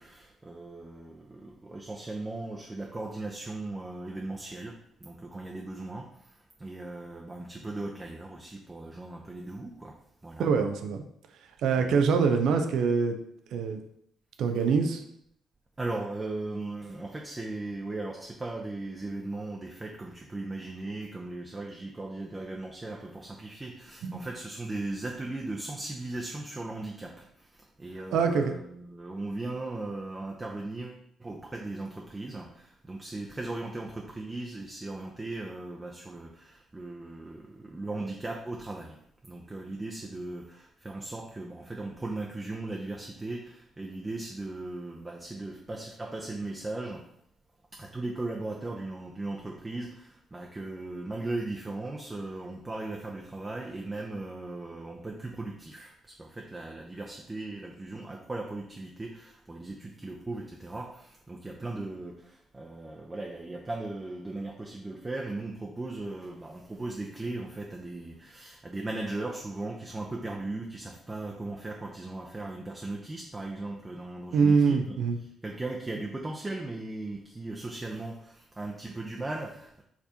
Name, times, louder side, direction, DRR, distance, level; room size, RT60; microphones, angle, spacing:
voice 1, 0.0-6.3 6.6-10.0 10.2-10.5 11.8-12.0 15.8-39.0 39.2-47.0 47.7-75.0 75.4-79.8, right 2 dB, 20° right, 0 dB, 0.6 m, -38 dB
voice 2, 10.4-11.0 11.6-13.2 13.5-13.8 14.4-15.0 24.0-24.3 28.1-28.5 74.3-75.2, right 5 dB, 65° right, 6 dB, 0.4 m, -24 dB
4.8 x 3.4 x 2.7 m, 0.70 s
figure-of-eight pair, 40°, 0 cm